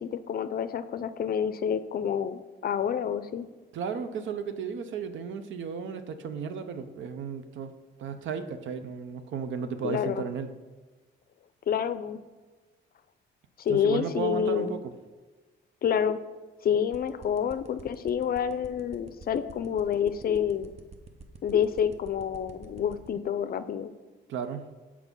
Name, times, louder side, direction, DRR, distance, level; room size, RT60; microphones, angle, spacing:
voice 1, 0.0-3.5 9.8-10.2 11.7-12.2 13.6-14.7 15.8-16.2 16.6-20.7 21.4-23.9, left 8 dB, 50° left, 13 dB, 0.5 m, -28 dB
voice 2, 3.7-7.7 8.0-10.5 13.7-14.9 24.3-24.7, right 6 dB, 75° right, 10 dB, 0.6 m, -34 dB
sound 1, 16.9-23.1, right 4 dB, 30° right, 0.7 m, -46 dB
6.0 x 4.7 x 5.4 m, 1.3 s
cardioid pair, 90°, 20 cm